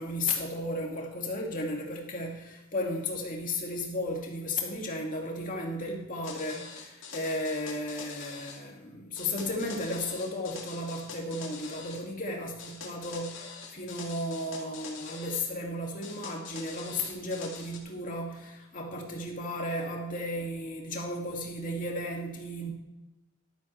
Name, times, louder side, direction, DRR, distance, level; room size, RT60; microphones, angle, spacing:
voice 1, 0.0-22.7, left 1 dB, 40° left, 0 dB, 2.4 m, -34 dB
sound 1, 6.2-8.6 9.2-12.0 12.6-15.5 16.0-17.8, left 5 dB, 55° left, 2.7 m, -44 dB
13.0 x 12.5 x 3.4 m, 0.97 s
head